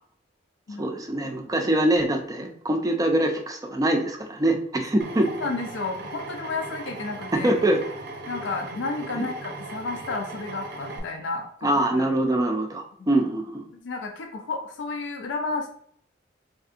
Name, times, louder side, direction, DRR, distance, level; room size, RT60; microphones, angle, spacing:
voice 1, 0.8-5.3 7.3-7.8 9.1-9.2 11.6-13.7, right 1 dB, 20° right, 4 dB, 0.4 m, -24 dB
Drill, 5.0-11.0, right 2 dB, 65° right, 0.6 m, -38 dB
voice 2, 5.4-7.5 8.3-12.1 13.0-13.1 13.7-15.7, left 3 dB, 80° left, 4 dB, 0.4 m, -32 dB
3.6 x 2.6 x 2.4 m, 0.62 s
head